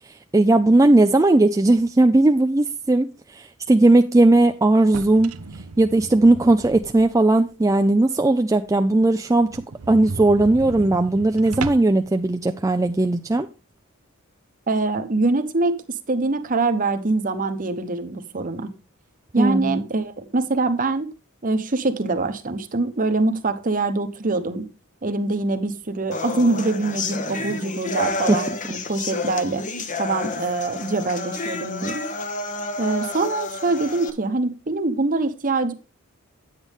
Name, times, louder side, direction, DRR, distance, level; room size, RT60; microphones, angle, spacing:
voice 1, 0.3-5.3 5.8-9.6 9.9-13.5 19.4-19.9 28.3-28.4, right 2 dB, 15° right, 0.4 m, -17 dB
sound 1, 4.8-7.3 7.8-7.9 8.3-8.4 8.6-8.7 9.0-9.1 9.4-12.1, right 4 dB, 90° right, 0.7 m, -35 dB
voice 2, 14.7-15.8 16.1-18.7 19.3-21.1 21.4-24.7 25.0-29.6 30.0-32.0 32.8-35.7, right 3 dB, 40° right, 1.0 m, -24 dB
sound 2, 26.1-34.1, left 3 dB, 35° left, 1.0 m, -30 dB
9.5 x 8.2 x 3.5 m
head